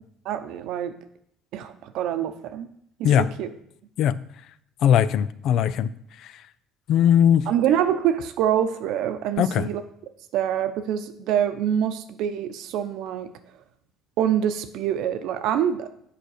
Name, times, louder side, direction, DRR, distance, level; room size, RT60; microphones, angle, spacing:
voice 1, 0.2-0.9 1.5-2.7 3.0-3.5 7.5-9.8 10.3-13.3 14.2-15.9, right 9 dB, 70° right, 9 dB, 0.8 m, -25 dB
voice 2, 4.8-5.9 6.9-7.4 9.4-9.7, left 9 dB, 65° left, 16 dB, 0.4 m, -19 dB
7.8 x 5.0 x 6.6 m, 0.70 s
supercardioid pair, 95°, 0 cm